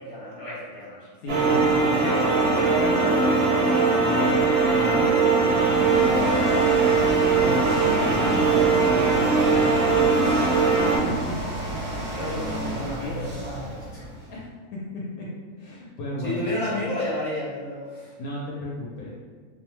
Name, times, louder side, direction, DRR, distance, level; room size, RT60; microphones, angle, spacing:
voice 1, 0.0-1.1 2.0-2.3 2.5-7.0 11.9-14.1 16.2-18.1, left 1 dB, 35° left, -8 dB, 1.0 m, -33 dB
voice 2, 1.2-2.2 7.4-10.4 11.0-11.3 14.3-15.3 15.6-16.8 18.2-19.1, equal, 75° left, -5 dB, 1.0 m, -35 dB
sound 1, 1.3-11.0, right 4 dB, 85° right, 1.2 m, -20 dB
sound 2, 5.3-14.4, right 1 dB, 45° right, 0.6 m, -32 dB
2.6 x 2.1 x 2.9 m, 1.5 s
omnidirectional pair, 1.6 m